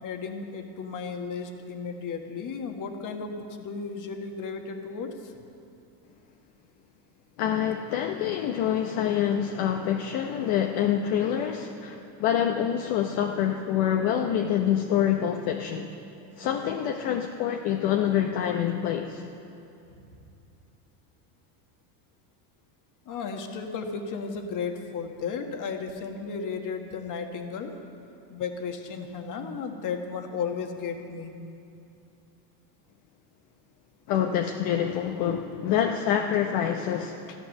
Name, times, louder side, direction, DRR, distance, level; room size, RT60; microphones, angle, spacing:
voice 1, 0.0-5.3 19.9-20.0 23.0-27.7 28.3-31.3 35.3-35.6, left 5 dB, 40° left, 4 dB, 1.6 m, -34 dB
voice 2, 7.4-15.9 16.4-19.2 34.1-37.3, left 9 dB, 55° left, 3 dB, 1.0 m, -26 dB
13.5 x 12.0 x 6.6 m, 2.7 s
supercardioid pair, 115°, 48 cm